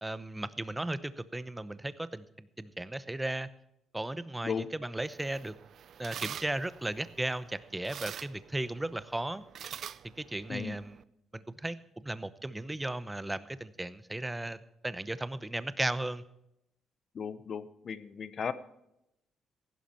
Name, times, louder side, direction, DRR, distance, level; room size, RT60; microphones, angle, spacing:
voice 1, 0.0-3.5 3.9-5.5 6.0-9.4 10.2-11.0 11.3-16.2, right 1 dB, 10° right, 15 dB, 0.8 m, -36 dB
sound 1, 5.0-11.0, right 9 dB, 65° right, 0.5 m, -46 dB
voice 2, 17.1-18.5, left 6 dB, 50° left, 14 dB, 1.0 m, -36 dB
15.5 x 11.5 x 4.5 m, 0.84 s
cardioid pair, 90°, 0 cm